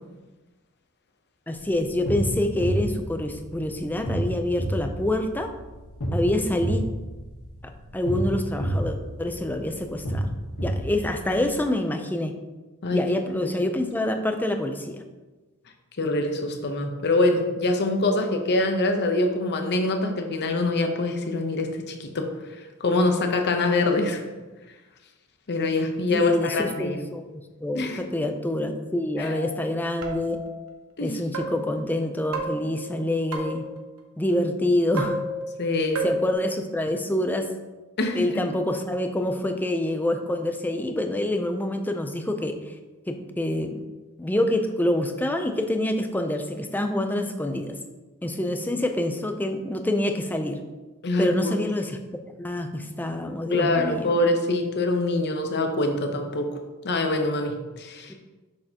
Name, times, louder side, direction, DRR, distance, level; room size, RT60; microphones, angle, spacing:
voice 1, 1.5-5.5 6.1-6.8 7.9-10.3 10.6-12.4 12.9-15.0 26.1-30.4 31.0-33.6 34.2-35.2 36.0-37.5 38.1-42.8 43.1-43.8 44.2-47.8 48.2-50.6 51.2-52.0 52.4-54.1 58.1-58.2, left 1 dB, 10° left, 6 dB, 0.4 m, -26 dB
sound 1, 1.6-11.5, equal, 65° left, 1.6 m, -30 dB
voice 2, 16.0-22.3 22.8-24.2 25.5-27.0 27.7-28.0 29.2-29.3 31.0-31.2 35.6-36.1 38.0-38.4 51.0-51.6 53.5-56.5 56.8-58.1, left 2 dB, 50° left, 5 dB, 0.8 m, -24 dB
sound 2, 29.2-29.6 30.0-30.6 31.3-31.8 32.3-33.8 35.0-35.7 35.9-36.3, right 1 dB, 65° right, 1.0 m, -31 dB
6.6 x 6.3 x 2.9 m, 1.2 s
head